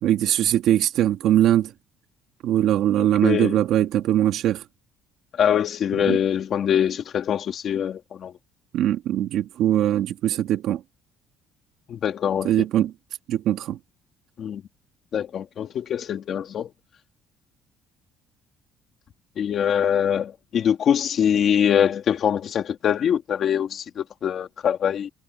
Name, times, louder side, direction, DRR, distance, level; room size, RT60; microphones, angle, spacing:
voice 1, 0.0-1.7 2.4-4.6 6.1-6.2 8.7-10.8 12.4-12.9 13.3-13.8, right 12 dB, 60° right, 2.0 m, -21 dB
voice 2, 3.0-3.6 5.4-8.3 11.9-12.5 14.4-14.6 15.1-16.7 19.4-25.1, left 9 dB, 40° left, 2.7 m, -23 dB
cardioid pair, 160°, 0 cm